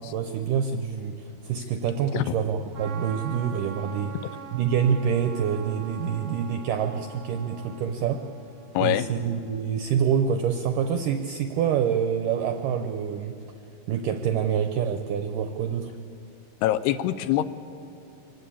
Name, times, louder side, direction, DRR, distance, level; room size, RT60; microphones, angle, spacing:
voice 1, 0.1-4.2 4.5-8.2 8.8-13.4 13.9-15.9, right 7 dB, 80° right, 7 dB, 1.9 m, -26 dB
Trumpet, 2.7-8.9, right 5 dB, 60° right, 1.5 m, -43 dB
voice 2, 8.7-9.1 16.6-17.4, left 13 dB, 80° left, 13 dB, 2.7 m, -23 dB
24.0 x 19.0 x 8.6 m, 2.9 s
omnidirectional pair, 4.8 m